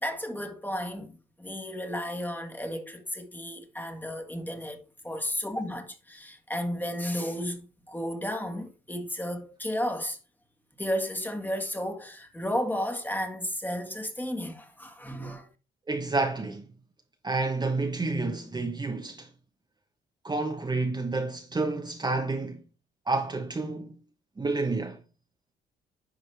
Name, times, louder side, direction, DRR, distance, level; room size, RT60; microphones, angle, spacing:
voice 1, 0.0-10.2 10.8-15.5, equal, 10° left, 1.6 m, -33 dB
voice 2, 15.9-16.6 17.2-19.3 20.2-22.6 23.1-23.9 24.4-25.0, right 3 dB, 20° right, 1.0 m, -29 dB
9.8 x 5.2 x 3.4 m
cardioid pair, 90°, 20 cm